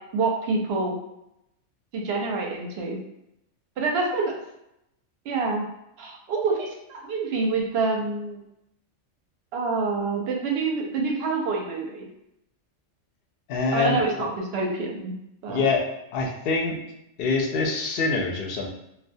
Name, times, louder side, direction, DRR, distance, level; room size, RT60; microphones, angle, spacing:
voice 1, 0.1-0.9 1.9-3.0 3.8-4.3 5.3-5.7 6.0-8.4 9.5-12.1 13.7-15.1 15.4-15.7, right 3 dB, 65° right, 0 dB, 0.7 m, -27 dB
voice 2, 13.5-14.0 15.5-15.9 16.1-16.8 17.2-18.7, left 4 dB, 60° left, 0 dB, 0.6 m, -24 dB
2.3 x 2.1 x 2.6 m, 0.83 s
omnidirectional pair, 1.3 m